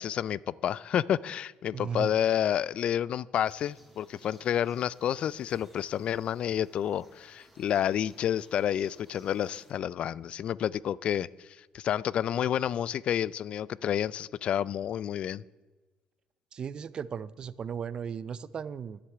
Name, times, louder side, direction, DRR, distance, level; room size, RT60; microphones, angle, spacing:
voice 1, 0.0-15.4, left 10 dB, 55° left, 22 dB, 0.3 m, -30 dB
voice 2, 1.7-2.1 16.5-19.0, right 7 dB, 40° right, 18 dB, 0.5 m, -36 dB
sound 1, 3.4-9.7, equal, 5° right, 2.6 m, -60 dB
10.0 x 8.1 x 7.9 m, 1.2 s
cardioid pair, 105°, 2 cm